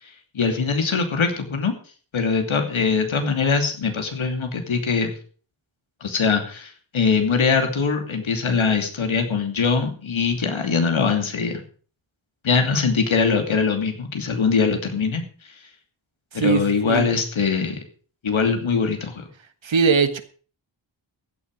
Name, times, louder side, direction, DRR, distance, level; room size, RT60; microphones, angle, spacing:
voice 1, 0.3-1.7 2.1-5.1 6.0-11.6 12.4-15.2 16.3-17.8 18.2-19.3, left 5 dB, 85° left, 5 dB, 2.9 m, -22 dB
voice 2, 16.3-17.1 19.6-20.2, right 5 dB, 75° right, 10 dB, 1.6 m, -20 dB
15.5 x 9.6 x 5.3 m, 0.41 s
wide cardioid pair, 110°, 46 cm